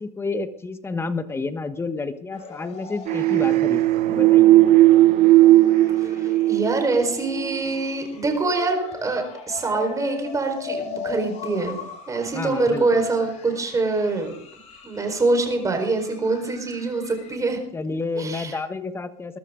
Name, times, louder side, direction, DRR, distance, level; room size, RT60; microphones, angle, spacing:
voice 1, 0.0-4.6 12.3-13.1 17.7-19.4, left 3 dB, 10° left, 10 dB, 1.3 m, -30 dB
sound 1, 2.3-17.4, left 5 dB, 35° left, 5.1 m, -39 dB
sound 2, 3.1-7.6, right 15 dB, 40° right, 0.9 m, -16 dB
voice 2, 6.2-11.8 12.1-14.4 14.8-17.6 18.2-18.5, right 3 dB, 15° right, 4 dB, 4.5 m, -24 dB
21.5 x 12.5 x 3.8 m, 0.65 s
supercardioid pair, 120°, 20 cm